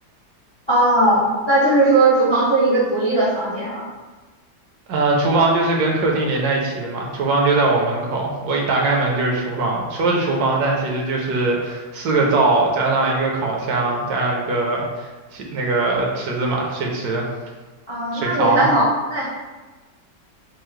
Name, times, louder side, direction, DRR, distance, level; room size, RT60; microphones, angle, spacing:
voice 1, 0.7-3.8 17.9-19.3, right 2 dB, 40° left, -8 dB, 0.4 m, -18 dB
voice 2, 4.9-17.3 18.1-18.7, right 3 dB, 70° right, -1 dB, 1.1 m, -21 dB
5.4 x 2.0 x 3.1 m, 1.3 s
omnidirectional pair, 1.9 m